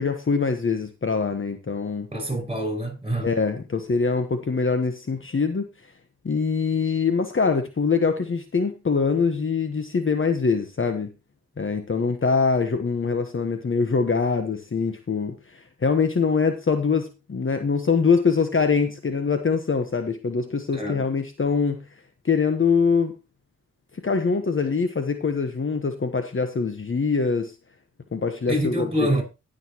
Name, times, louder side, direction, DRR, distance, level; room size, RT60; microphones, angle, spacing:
voice 1, 0.0-2.1 3.2-5.7 6.2-11.1 11.6-21.8 22.2-23.1 24.0-27.5 28.1-29.1, left 5 dB, 40° left, 1.2 m, -23 dB
voice 2, 2.1-3.3 20.7-21.1 28.5-29.2, equal, 20° right, 5.7 m, -26 dB
16.5 x 6.6 x 3.0 m
cardioid pair, 50°, 31 cm